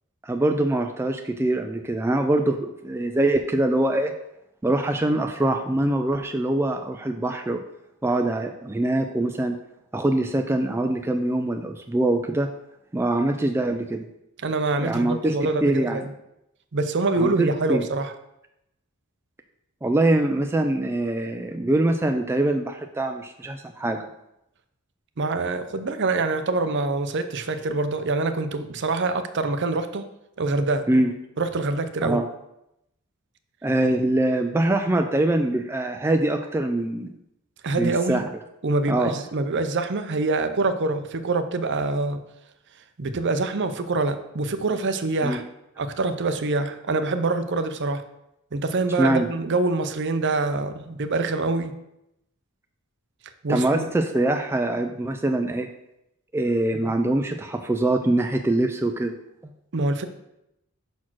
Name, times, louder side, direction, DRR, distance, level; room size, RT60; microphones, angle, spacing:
voice 1, 0.2-4.1 4.6-7.6 8.0-9.6 9.9-12.5 12.9-14.0 14.8-16.0 17.2-17.8 19.8-24.1 30.9-31.1 32.0-32.3 33.6-37.1 37.8-38.2 38.9-39.1 45.2-45.4 49.0-49.3 53.5-55.7 56.3-59.1, right 1 dB, 10° right, 5 dB, 0.3 m, -23 dB
voice 2, 14.4-16.1 16.7-18.1 25.2-30.1 30.4-30.9 31.4-32.2 37.6-38.2 38.6-42.2 43.0-45.4 45.8-48.0 48.5-51.8 53.4-53.8 59.7-60.1, right 3 dB, 55° right, 9 dB, 0.6 m, -25 dB
5.9 x 4.4 x 6.0 m, 0.84 s
head